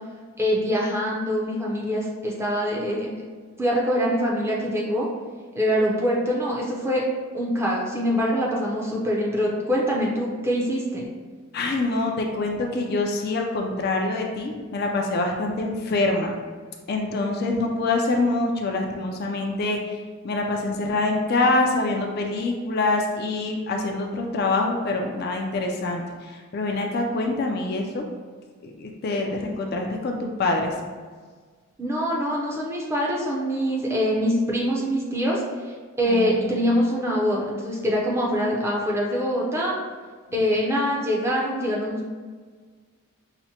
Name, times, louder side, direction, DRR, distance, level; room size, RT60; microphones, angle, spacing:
voice 1, 0.4-3.1 3.6-5.1 5.5-7.0 7.3-11.1 31.8-39.8 40.3-42.1, equal, 10° right, -4 dB, 0.5 m, -24 dB
voice 2, 11.5-16.3 16.9-20.0 20.2-28.0 28.6-30.7 36.1-36.6, left 2 dB, 45° left, 1 dB, 0.3 m, -25 dB
5.8 x 2.1 x 2.8 m, 1.5 s
head